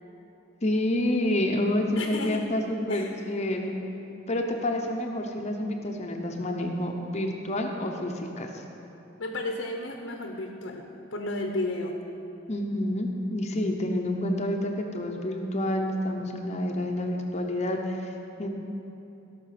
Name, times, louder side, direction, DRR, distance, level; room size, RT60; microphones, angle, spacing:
voice 1, 0.6-3.8 4.3-8.6 12.5-18.5, left 1 dB, 35° left, 2 dB, 0.8 m, -28 dB
voice 2, 2.0-2.5 2.9-3.2 9.2-12.0, left 2 dB, 80° left, 3 dB, 0.9 m, -33 dB
17.5 x 6.0 x 5.8 m, 3.0 s
head